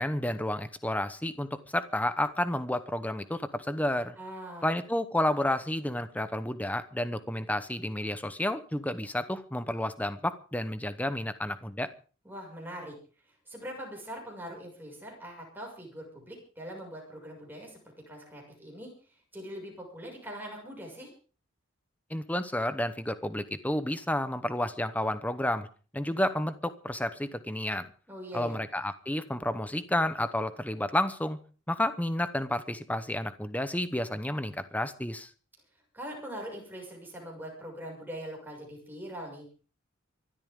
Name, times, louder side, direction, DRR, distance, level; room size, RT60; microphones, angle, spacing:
voice 1, 0.0-4.1 4.6-11.9 22.1-25.7 25.9-27.9 28.3-31.4 31.7-35.3, left 1 dB, 5° left, 12 dB, 0.9 m, -31 dB
voice 2, 4.2-4.8 12.2-12.9 13.5-17.8 18.1-18.9 19.3-21.1 28.1-28.6 35.9-39.5, equal, 10° right, 0 dB, 6.3 m, -42 dB
24.0 x 12.5 x 3.8 m, 0.39 s
head